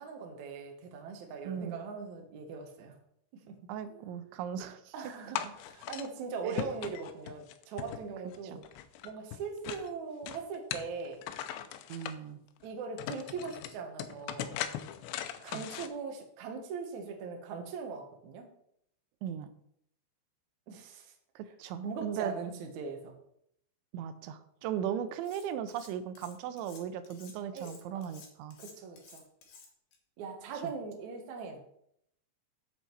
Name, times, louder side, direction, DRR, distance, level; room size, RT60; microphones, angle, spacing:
voice 1, 0.0-3.0 3.5-3.6 4.9-8.6 9.0-11.2 12.6-14.6 15.4-18.5 20.7-21.1 21.8-23.1 27.5-28.1 28.6-29.2 30.2-31.6, right 5 dB, 70° right, 3 dB, 1.9 m, -40 dB
voice 2, 1.5-1.8 3.7-4.9 6.4-6.7 8.4-8.6 11.9-12.4 15.5-15.7 19.2-19.5 21.4-22.3 23.9-28.6 30.6-30.7, right 9 dB, 85° right, 10 dB, 3.0 m, -37 dB
sound 1, 5.4-6.1 6.5-8.4 8.6-9.9 10.3-12.2 12.7-12.8 13.0-15.9, left 11 dB, 80° left, 2.8 m, -39 dB
Cutlery silverware, 25.2-25.9 26.1-30.0, left 5 dB, 60° left, 2.9 m, -54 dB
8.1 x 7.6 x 4.6 m, 0.71 s
omnidirectional pair, 5.2 m